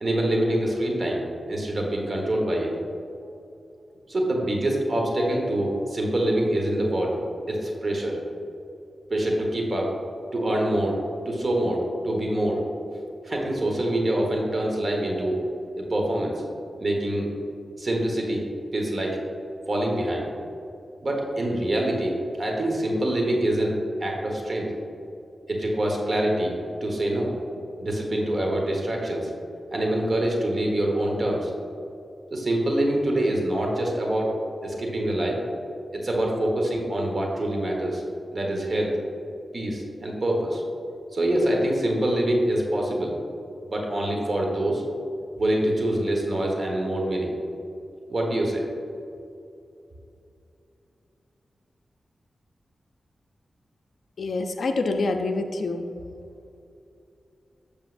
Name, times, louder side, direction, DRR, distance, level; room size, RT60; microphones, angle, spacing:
voice 1, 0.0-1.2 1.5-2.7 4.1-7.2 7.5-8.2 9.1-9.9 10.3-11.0 11.2-12.6 13.2-15.4 15.8-16.3 16.8-17.3 17.8-18.4 18.7-19.2 19.7-20.3 21.0-24.7 25.5-26.5 26.8-27.3 27.8-29.3 29.7-31.5 32.3-34.3 34.6-35.4 35.9-38.0 38.3-38.9 39.5-40.6 41.1-43.2 43.7-44.8 45.4-47.3 48.1-48.6, right 1 dB, 45° right, 0 dB, 1.3 m, -25 dB
voice 2, 54.2-55.9, left 3 dB, 75° left, 4 dB, 0.4 m, -26 dB
8.0 x 6.5 x 2.5 m, 2.7 s
cardioid pair, 70°, 0 cm